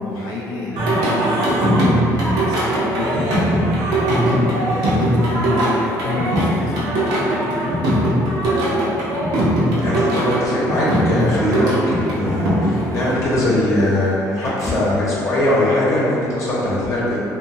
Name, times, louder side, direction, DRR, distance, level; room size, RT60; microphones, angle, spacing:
voice 1, 0.0-4.4 4.9-9.4, left 3 dB, 85° left, -4 dB, 0.5 m, -30 dB
Singing, 0.8-13.1, right 1 dB, 85° right, 0.7 m, -20 dB
voice 2, 9.8-17.2, left 1 dB, 50° left, -8 dB, 0.8 m, -20 dB
2.6 x 2.5 x 2.7 m, 2.7 s
cardioid pair, 120°, 7 cm